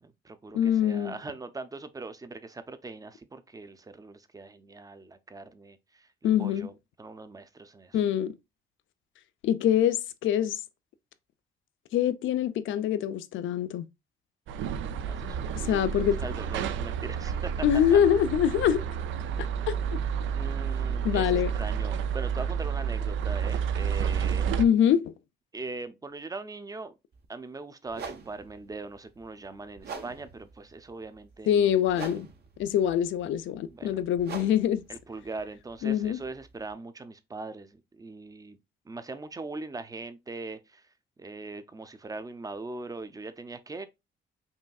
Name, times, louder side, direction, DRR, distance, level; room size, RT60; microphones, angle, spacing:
voice 1, 0.0-6.1 6.4-8.0 15.0-17.5 17.9-18.0 20.3-24.5 25.5-26.9 27.3-31.5 33.7-34.0 34.9-38.6 38.9-40.9 41.2-43.9, right 3 dB, 20° right, 0.5 m, -41 dB
voice 2, 0.5-1.2 6.2-6.7 7.9-8.4 9.4-10.6 11.9-13.9 15.6-16.2 17.6-18.8 19.7-20.0 21.0-21.5 24.6-25.1 31.5-32.3 32.6-34.8 35.8-36.2, left 10 dB, 75° left, 0.5 m, -24 dB
sound 1, 14.5-24.7, right 7 dB, 80° right, 0.4 m, -30 dB
sound 2, 27.1-27.3 27.9-36.7, right 5 dB, 55° right, 0.8 m, -45 dB
5.4 x 2.6 x 2.3 m
cardioid pair, 90°, 20 cm